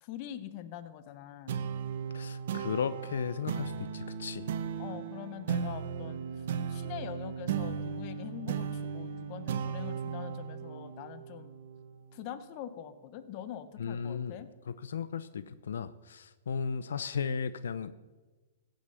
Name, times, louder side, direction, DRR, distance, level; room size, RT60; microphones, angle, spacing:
voice 1, 0.0-1.5 4.8-6.2 6.7-11.5 12.1-14.5, left 10 dB, 40° left, 12 dB, 1.0 m, -43 dB
sound 1, 1.5-12.3, right 7 dB, 60° right, 1.0 m, -36 dB
voice 2, 2.1-4.5 13.8-18.0, left 6 dB, 85° left, 15 dB, 0.5 m, -35 dB
15.5 x 6.5 x 6.9 m, 1.2 s
hypercardioid pair, 150°, 0 cm